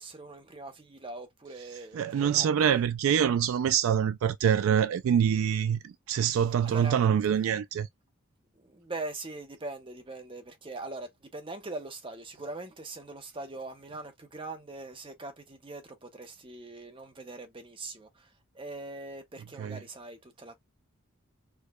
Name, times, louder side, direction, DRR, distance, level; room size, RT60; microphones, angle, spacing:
voice 1, 0.0-2.7 6.6-7.0 8.5-20.6, right 2 dB, 25° right, 0.7 m, -42 dB
voice 2, 1.9-7.9 19.6-19.8, right 8 dB, 90° right, 0.3 m, -25 dB
4.6 x 2.1 x 2.3 m
head